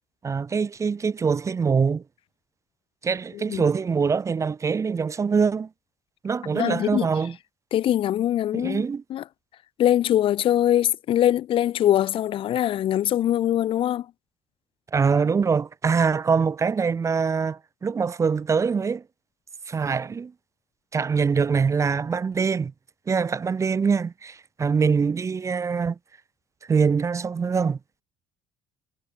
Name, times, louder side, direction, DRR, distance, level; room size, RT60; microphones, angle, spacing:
voice 1, 0.2-2.0 3.0-5.7 6.2-7.4 8.5-9.0 14.9-19.0 19.7-20.3 20.9-22.7 23.1-26.0 26.7-27.8, right 5 dB, 30° right, 0.8 m, -23 dB
voice 2, 6.5-7.1 7.7-8.8 9.1-9.2 9.8-14.1, left 12 dB, 60° left, 1.1 m, -22 dB
supercardioid pair, 85°, 10 cm